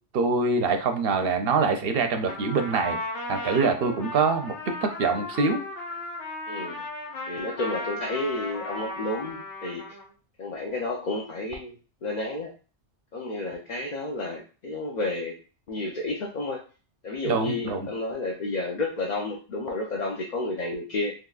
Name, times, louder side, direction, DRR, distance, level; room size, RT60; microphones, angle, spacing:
voice 1, 0.1-3.0 3.3-5.6 17.2-17.9, right 4 dB, 65° right, 6 dB, 0.7 m, -24 dB
Trumpet, 2.2-10.1, left 2 dB, 85° left, 1.2 m, -35 dB
voice 2, 6.5-6.8 7.3-9.8 10.4-11.7 12.0-12.5 13.1-15.4 15.7-16.6 17.0-21.1, left 2 dB, 55° left, -1 dB, 0.5 m, -31 dB
3.7 x 3.1 x 2.3 m, 0.38 s
omnidirectional pair, 1.2 m